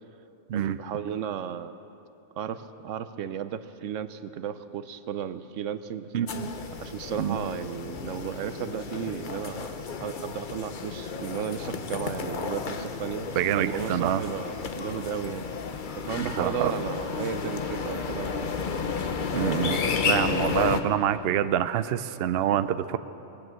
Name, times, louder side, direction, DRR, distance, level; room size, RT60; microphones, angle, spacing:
voice 1, 0.5-1.8 2.4-6.1 6.8-9.7 10.0-13.3 13.7-15.5 15.9-18.5 19.9-20.3, right 8 dB, 85° right, 12 dB, 1.0 m, -34 dB
voice 2, 6.1-6.5 7.2-7.4 13.4-14.2 16.2-16.7 19.3-19.8 20.0-23.0, right 10 dB, 65° right, 12 dB, 0.7 m, -26 dB
sound 1, 6.3-20.8, left 5 dB, 45° left, 0.8 m, -32 dB
20.5 x 8.7 x 7.7 m, 2.8 s
omnidirectional pair, 1.3 m